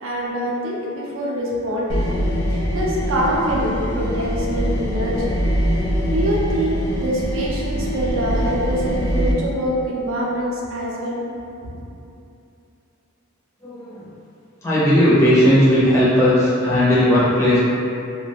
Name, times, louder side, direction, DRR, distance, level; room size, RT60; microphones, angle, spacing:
voice 1, 0.0-2.0 2.5-5.3 6.1-11.2, equal, 70° right, -4 dB, 0.5 m, -24 dB
sound 1, 1.9-9.3, equal, 65° left, 0.4 m, -23 dB
voice 2, 13.6-14.0 14.6-17.6, equal, 15° left, -10 dB, 0.5 m, -16 dB
2.3 x 2.2 x 3.2 m, 2.7 s
head